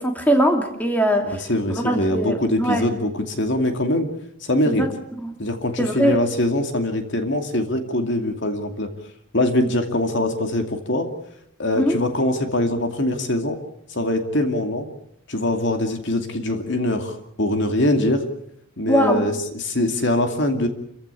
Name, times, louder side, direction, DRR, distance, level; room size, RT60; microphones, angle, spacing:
voice 1, 0.0-1.4 1.7-2.9 4.6-4.9 5.2-5.3 5.8-6.2 11.8-12.0 18.9-19.2, equal, 10° left, 3 dB, 2.8 m, -21 dB
voice 2, 1.2-4.1 4.4-4.9 5.4-8.9 9.3-11.1 11.6-13.6 13.9-14.9 15.3-18.2 18.8-20.7, left 1 dB, 55° left, 6 dB, 2.5 m, -23 dB
28.5 x 15.5 x 8.5 m, 0.74 s
head